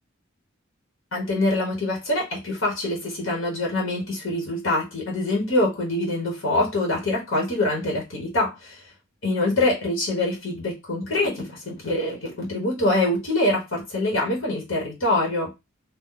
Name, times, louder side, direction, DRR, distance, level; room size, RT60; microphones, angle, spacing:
voice 1, 1.1-8.8 9.2-15.5, left 2 dB, 75° left, -1 dB, 1.3 m, -24 dB
3.0 x 2.2 x 3.7 m, 0.23 s
head